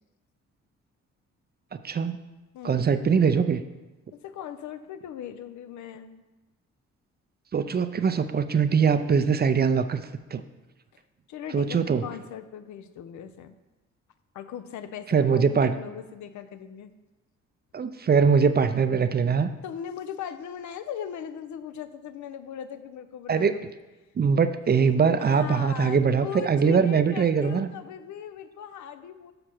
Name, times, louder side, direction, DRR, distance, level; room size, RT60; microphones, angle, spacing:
voice 1, 1.8-2.2 2.6-3.6 7.5-10.0 10.3-10.4 11.5-12.1 15.1-15.8 17.7-19.5 23.3-23.5 24.2-27.7, right 6 dB, 30° right, 11 dB, 0.5 m, -22 dB
voice 2, 2.5-2.9 4.1-6.2 11.3-13.6 14.3-16.9 19.6-23.6 24.7-24.8 25.2-29.3, left 9 dB, 70° left, 11 dB, 0.6 m, -39 dB
6.5 x 5.8 x 4.4 m, 1.1 s
supercardioid pair, 60°, 31 cm